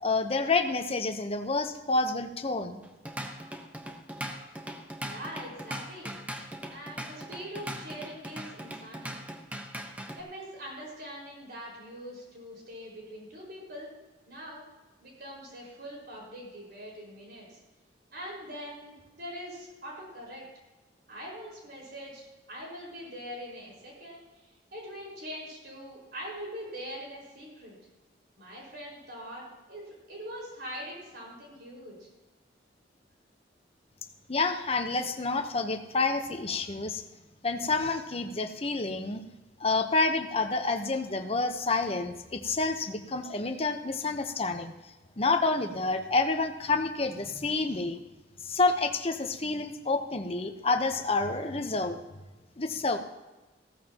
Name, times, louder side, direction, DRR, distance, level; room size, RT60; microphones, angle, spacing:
voice 1, 0.0-2.8 34.3-37.0 37.4-39.2 39.6-44.7 45.2-48.0 48.4-52.0 52.6-53.0, left 3 dB, 35° left, 6 dB, 0.9 m, -28 dB
Drum kit / Drum, 2.8-10.2, right 1 dB, 10° right, 1.1 m, -40 dB
voice 2, 5.0-6.1 6.7-9.2 10.2-13.9 14.2-14.6 15.0-17.6 18.1-20.4 21.1-27.8 28.4-32.1, equal, 60° right, -3 dB, 5.1 m, -43 dB
15.5 x 14.5 x 3.0 m, 1.1 s
head